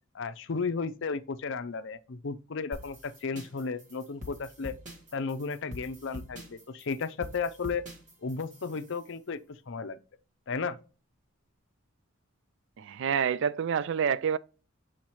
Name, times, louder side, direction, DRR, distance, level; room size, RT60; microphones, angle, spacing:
voice 1, 0.1-4.8 5.1-7.8 8.2-10.0 10.5-10.8, left 4 dB, 60° left, 0.6 m, -34 dB
sound 1, 2.7-9.1, left 1 dB, 40° right, 1.7 m, -45 dB
voice 2, 12.8-14.4, right 7 dB, 60° right, 0.3 m, -27 dB
7.2 x 4.9 x 3.0 m
head